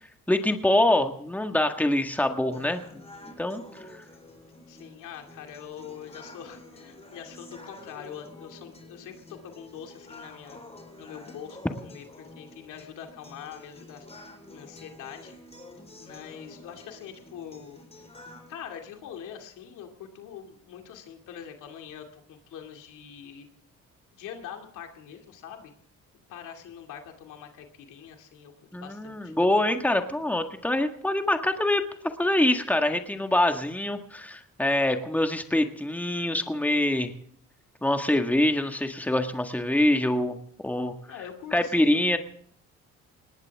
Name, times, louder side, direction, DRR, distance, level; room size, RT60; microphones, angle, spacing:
voice 1, 0.3-3.0 3.4-3.6 28.7-31.8 32.2-37.1 37.8-40.4 40.6-40.9 41.5-42.2, left 1 dB, 5° left, 5 dB, 1.7 m, -25 dB
sound 1, 2.5-18.5, left 1 dB, 20° left, 4.3 m, -49 dB
voice 2, 4.7-10.6 11.0-15.3 16.0-17.8 18.5-23.5 24.1-25.7 26.3-29.3 41.1-42.0, left 8 dB, 90° left, 3 dB, 2.6 m, -44 dB
19.5 x 18.5 x 3.6 m, 0.62 s
cardioid pair, 90°, 30 cm